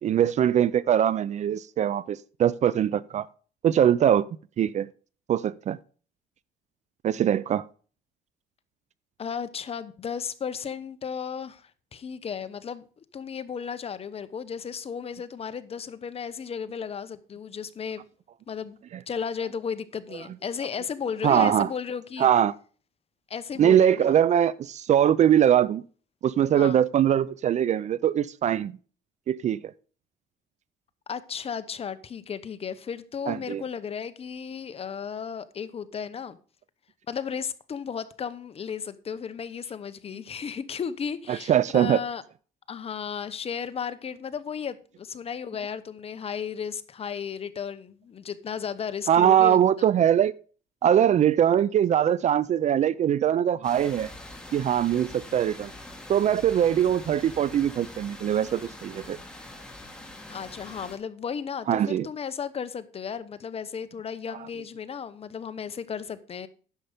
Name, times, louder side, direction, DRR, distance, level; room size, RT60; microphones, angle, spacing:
voice 1, 0.0-3.3 3.6-4.3 4.6-4.9 5.3-5.8 7.0-7.6 21.2-21.7 22.2-22.5 23.6-25.8 26.2-28.7 29.3-29.6 33.3-33.6 41.3-42.0 49.1-50.3 50.8-54.1 54.5-55.7 56.1-59.2 61.7-62.1, right 10 dB, 45° right, 0.4 m, -22 dB
voice 2, 9.2-12.8 13.1-18.0 18.5-18.8 19.1-22.3 23.3-24.1 26.6-26.8 31.1-36.4 37.1-42.2 42.7-49.6 60.3-66.5, left 7 dB, 35° left, 0.9 m, -34 dB
sound 1, 53.6-61.0, left 1 dB, 5° left, 2.2 m, -44 dB
10.0 x 6.8 x 5.0 m
cardioid pair, 110°, 17 cm